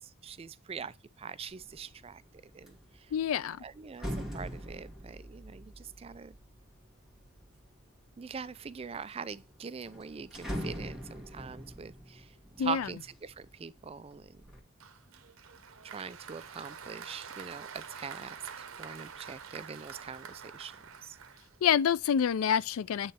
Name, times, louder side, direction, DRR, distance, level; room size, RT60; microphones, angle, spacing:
voice 1, 0.2-2.2 2.5-2.8 3.6-4.1 4.3-6.3 8.2-12.2 12.6-14.3 15.9-18.3 18.8-20.7 21.0-21.2, right 6 dB, 30° right, 0.3 m, -42 dB
sound 1, 1.6-1.9 2.3-7.7 8.3-8.9 9.3-9.4 9.7-13.6 14.0-14.6, equal, ahead, 1.7 m, -42 dB
voice 2, 3.1-3.6 12.6-12.9 21.6-23.1, left 8 dB, 85° left, 0.3 m, -27 dB
Applause, 14.8-21.9, right 6 dB, 85° right, 0.8 m, -47 dB
8.7 x 3.2 x 4.2 m
head